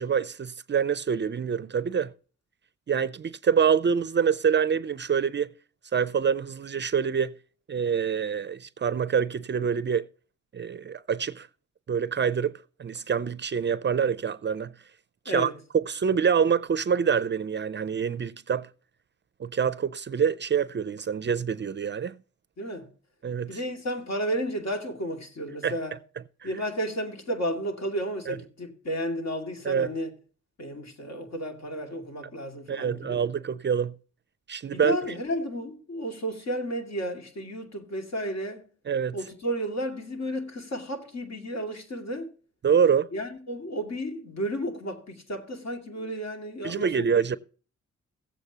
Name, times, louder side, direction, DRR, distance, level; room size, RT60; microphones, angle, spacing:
voice 1, 0.0-2.1 2.9-5.5 5.9-7.3 7.7-10.1 10.5-11.5 11.9-14.7 15.3-18.7 19.4-22.2 23.2-23.6 25.6-25.7 28.3-28.4 29.6-29.9 32.7-33.9 34.5-35.0 38.9-39.2 42.6-43.1 46.6-47.4, right 7 dB, 40° right, 0.4 m, -26 dB
voice 2, 22.6-22.9 23.5-26.0 26.4-30.1 30.6-33.2 34.7-38.6 39.1-42.3 43.1-47.1, equal, 60° left, 2.3 m, -32 dB
16.5 x 8.0 x 2.8 m
cardioid pair, 80°, 30 cm